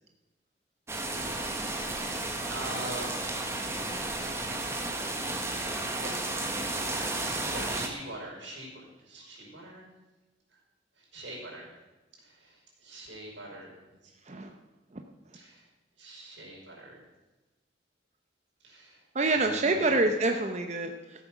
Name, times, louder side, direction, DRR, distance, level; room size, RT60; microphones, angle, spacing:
sound 1, 0.9-7.9, right 2 dB, 15° right, 1.3 m, -33 dB
voice 1, 2.5-3.6 5.7-6.2 6.8-9.9 10.5-10.6 11.0-11.7 12.2-14.1 15.3-15.7 16.0-17.0 18.6-19.1 19.3-20.0, right 1 dB, 90° right, -2 dB, 5.3 m, -44 dB
voice 2, 19.1-21.2, right 2 dB, 35° right, 4 dB, 0.8 m, -27 dB
14.0 x 8.5 x 6.1 m, 1.1 s
head